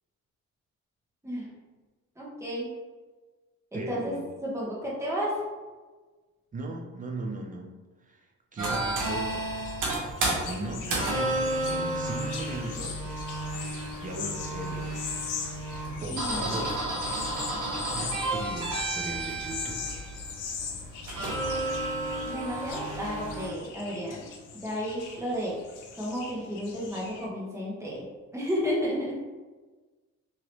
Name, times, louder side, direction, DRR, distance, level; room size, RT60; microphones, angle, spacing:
voice 1, 2.2-2.7 3.7-4.1 4.4-5.4 16.1-16.7 22.2-24.2 24.6-25.6 26.0-28.0 28.3-29.1, equal, 10° right, -6 dB, 1.1 m, -32 dB
voice 2, 3.7-4.3 6.5-7.7 8.0-9.7 10.2-13.0 14.0-15.0 16.0-16.8 17.9-20.0, right 2 dB, 25° right, 1 dB, 0.6 m, -38 dB
sound 1, 8.6-23.5, right 2 dB, 80° right, 0.9 m, -32 dB
sound 2, 9.0-27.3, left 6 dB, 85° left, 0.6 m, -41 dB
2.9 x 2.8 x 3.0 m, 1.3 s
cardioid pair, 90°, 30 cm